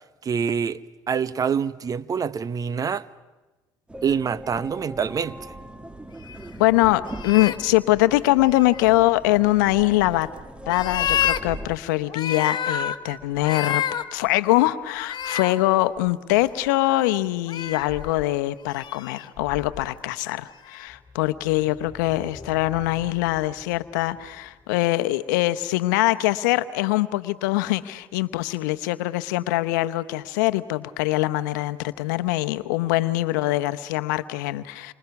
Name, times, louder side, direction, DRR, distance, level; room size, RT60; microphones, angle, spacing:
voice 1, 0.2-0.8 1.1-3.0 4.0-5.5, right 6 dB, 40° right, 0.8 m, -26 dB
sound 1, 3.9-11.8, right 1 dB, 10° right, 1.4 m, -40 dB
sound 2, 6.3-6.4 7.1-7.6 8.5-8.9 9.7-10.2 10.6-11.4 12.1-13.0 13.4-14.0 14.9-15.5 16.3-17.1 17.5-18.2 18.7-19.9 20.7-20.8, left 9 dB, 50° left, 1.2 m, -29 dB
voice 2, 6.6-10.3 10.7-13.8 14.1-34.9, left 17 dB, 85° left, 0.9 m, -23 dB
sound 3, 20.9-25.3, left 3 dB, 15° left, 4.9 m, -46 dB
28.5 x 25.5 x 6.0 m
hypercardioid pair, 70°, 10 cm